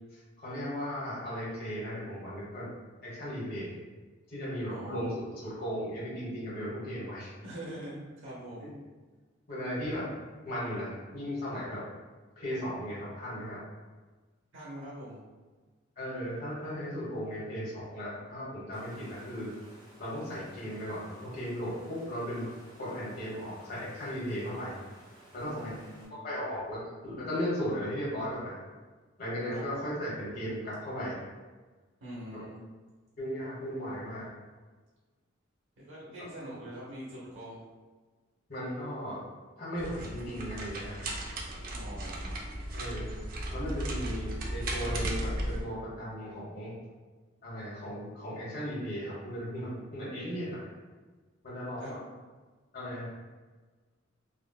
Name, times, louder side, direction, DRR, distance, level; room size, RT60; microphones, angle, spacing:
voice 1, 0.1-2.7 3.0-3.7 4.3-7.3 8.6-8.7 9.5-10.0 10.4-11.8 12.4-13.6 16.0-19.5 20.0-22.5 22.8-24.8 25.3-25.7 26.2-28.6 29.2-31.2 33.2-34.3 38.5-39.2 39.6-41.2 42.7-43.1 43.5-46.7 47.4-50.7 51.4-52.0 52.7-53.1, equal, 50° left, -8 dB, 1.1 m, -36 dB
voice 2, 4.7-5.2 7.4-8.7 14.5-15.2 25.5-26.2 29.5-29.6 32.0-32.6 35.8-37.6 41.7-42.4 51.8-51.9, right 1 dB, 65° right, -8 dB, 0.8 m, -43 dB
Water, 18.7-26.0, right 1 dB, 20° right, 0.8 m, -56 dB
sound 1, 39.8-45.6, right 1 dB, 45° right, 0.4 m, -35 dB
3.8 x 2.2 x 2.2 m, 1.4 s
head